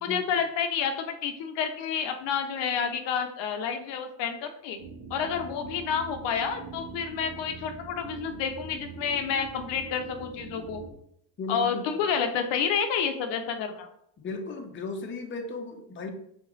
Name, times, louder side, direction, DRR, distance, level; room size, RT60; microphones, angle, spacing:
voice 1, 0.0-4.8 5.1-10.8 11.5-13.9, left 7 dB, 60° left, 6 dB, 0.7 m, -29 dB
sound 1, 4.8-10.9, right 4 dB, 30° right, 0.8 m, -43 dB
voice 2, 11.4-11.9 14.2-16.1, left 3 dB, 25° left, 4 dB, 0.6 m, -35 dB
3.4 x 3.0 x 3.8 m, 0.71 s
supercardioid pair, 95°, 49 cm